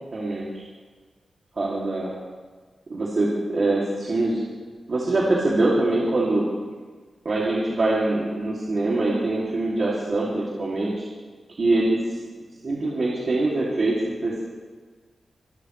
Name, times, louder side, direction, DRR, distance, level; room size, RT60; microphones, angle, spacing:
voice 1, 0.1-0.6 1.6-2.1 2.9-4.4 4.9-6.5 7.2-11.0 11.6-12.0 12.6-14.4, right 2 dB, 45° right, -6 dB, 2.7 m, -23 dB
24.5 x 13.5 x 3.3 m, 1.4 s
wide cardioid pair, 160°, 0 cm